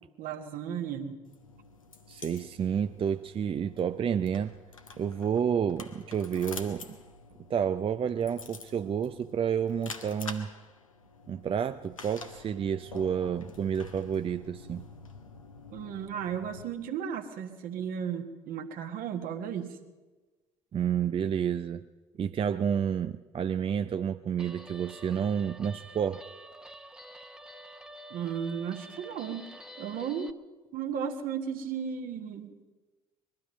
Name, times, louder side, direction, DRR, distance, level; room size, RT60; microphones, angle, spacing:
voice 1, 0.2-1.2 15.7-19.8 28.1-29.4 29.8-30.3 30.7-32.5, right 8 dB, 55° right, 6 dB, 1.5 m, -35 dB
sound 1, 1.3-16.6, left 4 dB, 90° left, 0.8 m, -47 dB
voice 2, 2.1-4.5 5.0-7.0 7.5-10.5 11.3-14.8 20.7-21.8 22.2-26.2, right 8 dB, 35° right, 10 dB, 0.5 m, -30 dB
Guitar, 24.4-30.3, right 1 dB, 5° right, 0.9 m, -48 dB
21.0 x 12.5 x 5.4 m, 1.3 s
figure-of-eight pair, 50°, 17 cm